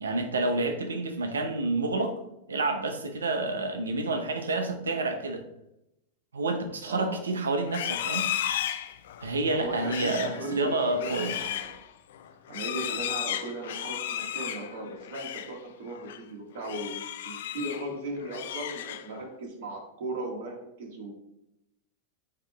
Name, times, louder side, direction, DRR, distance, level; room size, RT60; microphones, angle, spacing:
voice 1, 0.0-2.2 2.5-5.4 6.3-8.3 9.2-11.4, right 2 dB, 90° right, 8 dB, 0.5 m, -29 dB
Livestock farm animals working animals, 7.6-15.6 15.9-16.2 16.6-17.9 18.2-19.3, left 11 dB, 70° left, 0.3 m, -34 dB
voice 2, 9.5-11.7 12.5-21.1, right 1 dB, 65° right, -1 dB, 1.5 m, -37 dB
8.3 x 2.8 x 2.3 m, 0.84 s
hypercardioid pair, 100°, 0 cm